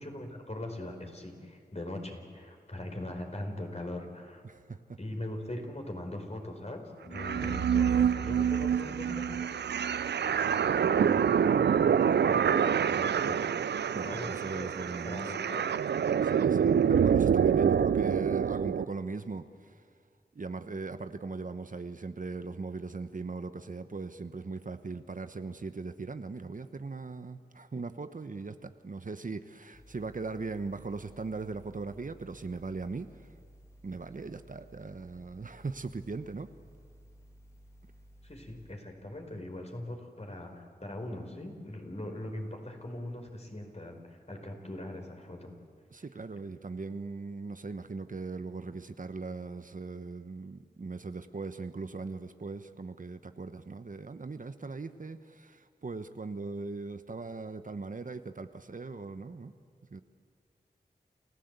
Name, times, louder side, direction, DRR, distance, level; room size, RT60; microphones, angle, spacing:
voice 1, 0.0-4.4 5.0-9.7 10.2-10.5 10.8-14.7 15.0-15.6 38.2-45.5, left 1 dB, 40° left, 3 dB, 4.4 m, -41 dB
voice 2, 4.4-5.0 7.3-7.7 13.9-15.3 16.2-19.8 20.3-33.3 33.8-36.5 45.9-59.5 59.9-60.0, right 4 dB, 50° right, 10 dB, 1.0 m, -39 dB
sound 1, 7.1-18.8, right 8 dB, 80° right, 0.4 m, -26 dB
sound 2, 29.7-38.7, equal, 15° left, 2.9 m, -56 dB
29.0 x 14.5 x 8.1 m, 2.2 s
cardioid pair, 40°, 17 cm